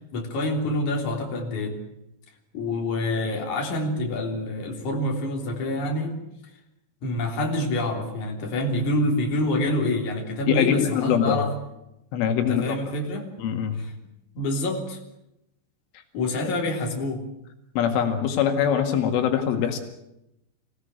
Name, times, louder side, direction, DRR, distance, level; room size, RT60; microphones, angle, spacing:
voice 1, 0.1-1.8 2.5-6.2 7.0-11.5 12.3-13.3 13.8-13.9 14.3-15.0 16.1-17.2, left 1 dB, 40° left, 2 dB, 4.4 m, -27 dB
voice 2, 10.5-11.4 12.1-12.8 13.4-13.8 16.4-16.5 17.8-19.8, left 8 dB, 85° left, 5 dB, 4.5 m, -23 dB
26.0 x 17.0 x 8.3 m, 0.86 s
omnidirectional pair, 5.5 m